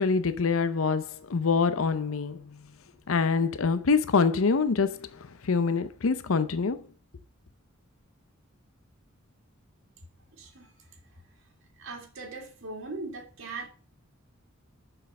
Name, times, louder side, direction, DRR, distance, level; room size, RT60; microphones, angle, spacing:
voice 1, 0.0-2.4 3.1-5.1 5.4-6.8, left 4 dB, 75° left, 0.6 m, -25 dB
voice 2, 10.3-10.8 11.1-11.2 11.8-13.7, right 3 dB, 70° right, 2.1 m, -40 dB
6.7 x 6.5 x 5.3 m
head